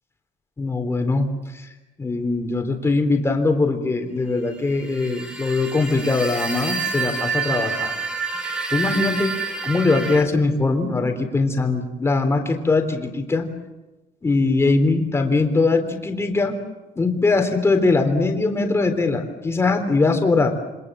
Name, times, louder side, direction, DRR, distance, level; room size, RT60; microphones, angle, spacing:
voice 1, 0.6-1.3 2.0-7.9 8.7-9.3 9.6-13.5 14.2-16.6 17.0-20.5, left 3 dB, 15° left, 5 dB, 3.6 m, -21 dB
sound 1, 4.9-10.2, right 4 dB, 5° right, 2.3 m, -28 dB
28.0 x 25.5 x 7.6 m, 1.1 s
cardioid pair, 165°, 15 cm